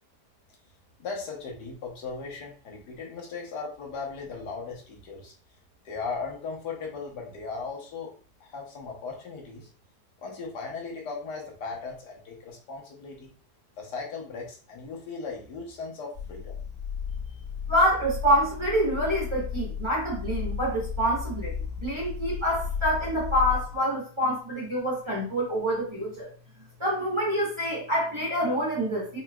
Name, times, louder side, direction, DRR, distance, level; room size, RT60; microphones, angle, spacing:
voice 1, 1.0-5.3 5.8-8.1 8.4-9.7 10.2-13.3 13.8-16.6, left 4 dB, 85° left, -1 dB, 1.7 m, -37 dB
sound 1, 16.1-23.8, left 6 dB, 35° left, 1.8 m, -34 dB
voice 2, 17.7-21.5 21.8-26.3 26.8-29.2, equal, 20° right, -4 dB, 1.2 m, -26 dB
5.5 x 3.0 x 2.3 m, 0.39 s
omnidirectional pair, 1.7 m